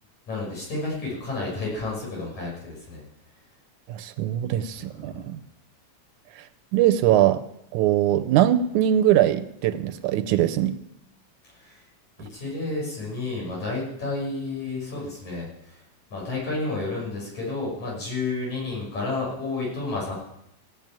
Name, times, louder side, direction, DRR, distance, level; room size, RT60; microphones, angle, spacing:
voice 1, 0.3-3.0 5.0-5.3 11.5-11.8 12.2-15.8 16.1-20.1, left 3 dB, 65° left, -4 dB, 8.3 m, -31 dB
voice 2, 3.9-5.4 6.4-6.5 6.7-7.4 7.7-10.7, right 12 dB, 80° right, 11 dB, 2.0 m, -21 dB
17.0 x 7.2 x 8.9 m, 0.80 s
omnidirectional pair, 3.6 m